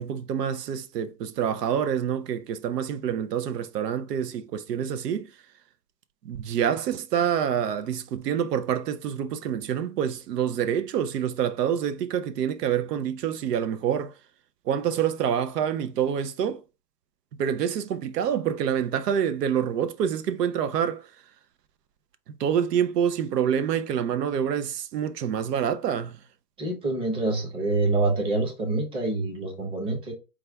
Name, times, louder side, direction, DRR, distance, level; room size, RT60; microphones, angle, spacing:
voice 1, 0.0-5.3 6.2-14.1 14.7-16.6 17.4-21.0 22.4-26.2, right 8 dB, 80° right, 0.6 m, -27 dB
voice 2, 26.6-30.1, right 2 dB, 10° right, 0.7 m, -26 dB
4.8 x 2.3 x 3.3 m
hypercardioid pair, 135°, 47 cm